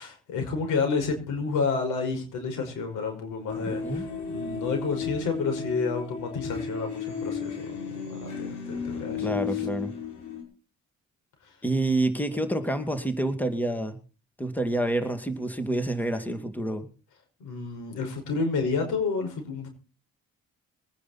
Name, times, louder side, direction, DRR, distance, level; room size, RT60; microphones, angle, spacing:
voice 1, 0.0-7.8 8.1-9.3 17.4-19.7, left 4 dB, 85° left, 5.8 m, -30 dB
sound 1, 3.5-10.4, left 6 dB, 65° left, 6.1 m, -34 dB
voice 2, 3.7-4.0 9.2-9.9 11.6-14.0 14.4-16.9, right 1 dB, 5° left, 2.5 m, -28 dB
22.5 x 9.9 x 4.3 m
cardioid pair, 90°, 30 cm